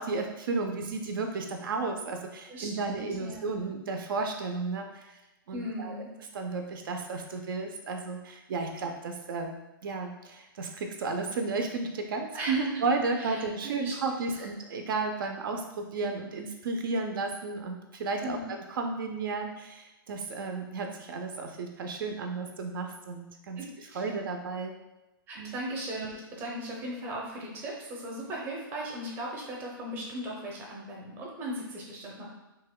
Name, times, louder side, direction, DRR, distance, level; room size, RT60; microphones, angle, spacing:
voice 1, 0.0-5.2 5.5-6.0 6.3-9.5 9.8-24.7 25.4-25.5, right 3 dB, 65° right, 4 dB, 0.4 m, -33 dB
voice 2, 2.5-3.5 5.5-6.1 12.3-12.7 13.2-13.9 14.3-14.5 18.2-18.5 23.6-24.1 25.3-32.3, right 1 dB, 15° right, -2 dB, 0.5 m, -38 dB
2.9 x 2.2 x 3.6 m, 1.0 s
hypercardioid pair, 160°, 12 cm